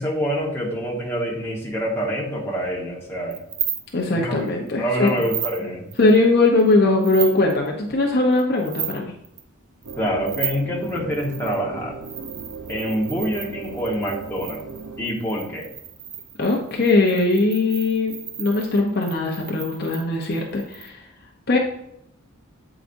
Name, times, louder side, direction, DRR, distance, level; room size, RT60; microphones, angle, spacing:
voice 1, 0.0-3.4 4.1-4.4 4.8-5.9 10.0-12.0 12.7-14.6 15.0-15.7, equal, 10° left, -3 dB, 1.1 m, -26 dB
sound 1, 3.3-4.1 4.5-4.7 5.1-5.6 5.9-6.7 7.0-7.7 8.3-9.0 9.2-9.4 9.8-11.6 12.0-20.9, right 9 dB, 35° right, 0.5 m, -34 dB
voice 2, 3.9-5.1 6.0-9.1 16.4-21.0 21.5-21.6, left 2 dB, 45° left, 0 dB, 0.7 m, -20 dB
sound 2, 9.8-15.1, right 4 dB, 85° right, 0.7 m, -37 dB
8.2 x 4.9 x 2.6 m, 0.76 s
head